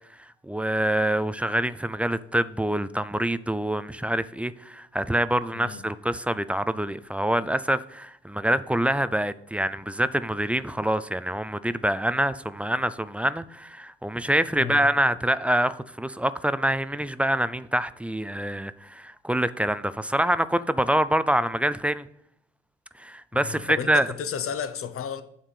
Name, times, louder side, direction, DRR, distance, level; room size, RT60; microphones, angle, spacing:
voice 1, 0.2-22.1 23.0-24.1, right 1 dB, 5° right, 0.3 m, -26 dB
voice 2, 23.3-25.2, left 7 dB, 45° left, 0.9 m, -33 dB
9.0 x 3.6 x 6.6 m
hypercardioid pair, 60°, 31 cm